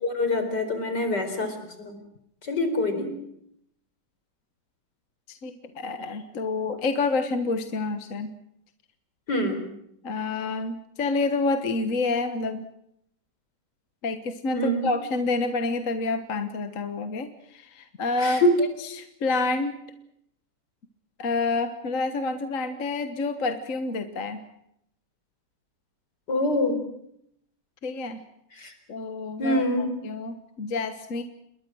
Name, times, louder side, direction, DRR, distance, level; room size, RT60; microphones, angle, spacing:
voice 1, 0.0-2.0 2.4-3.1 9.3-9.7 14.5-14.8 18.2-18.5 26.3-26.8 28.6-28.7 29.4-29.9, left 1 dB, 75° left, 7 dB, 4.9 m, -25 dB
voice 2, 5.3-8.3 10.0-12.6 14.0-18.7 18.9-19.8 21.2-24.4 27.8-28.2 28.9-31.2, left 3 dB, 50° left, 8 dB, 1.6 m, -28 dB
28.0 x 21.5 x 6.3 m, 0.74 s
omnidirectional pair, 1.8 m